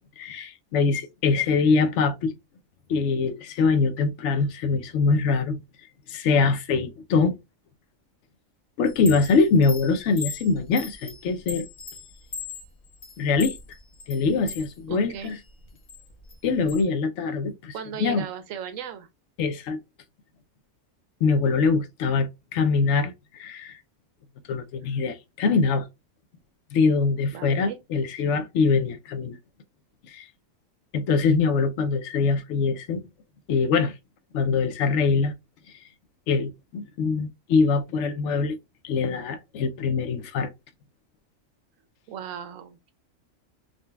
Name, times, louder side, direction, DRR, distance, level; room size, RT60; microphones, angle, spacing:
voice 1, 0.2-2.3 2.9-5.6 6.1-7.4 8.8-11.7 13.2-13.6 14.1-15.4 16.4-17.7 18.0-18.3 19.4-19.8 21.2-23.8 24.5-25.9 26.7-29.4 30.1-30.3 30.9-33.0 33.5-34.0 34.3-35.3 35.7-35.8 36.3-38.6 38.8-40.5, left 4 dB, 70° left, 0.8 m, -23 dB
Chime, 8.9-14.7 15.1-16.8, left 5 dB, 45° left, 0.5 m, -39 dB
voice 2, 14.9-15.4 17.7-19.1 27.3-27.8 42.1-42.9, right 7 dB, 75° right, 1.0 m, -36 dB
3.8 x 2.2 x 2.2 m
omnidirectional pair, 1.4 m